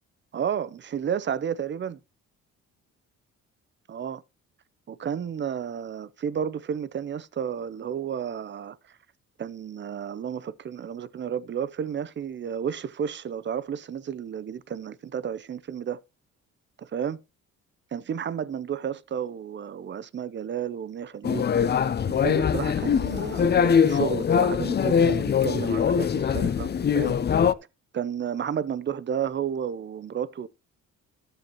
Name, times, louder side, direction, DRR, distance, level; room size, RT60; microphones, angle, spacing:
voice 1, 0.3-2.0 3.9-4.2 4.9-8.8 9.4-16.0 16.8-17.2 17.9-21.5 22.1-27.2 27.9-30.5, right 8 dB, 40° right, 0.6 m, -32 dB
sound 1, 21.2-27.5, left 7 dB, 35° left, 0.6 m, -22 dB
12.0 x 7.8 x 3.0 m
cardioid pair, 90°, 30 cm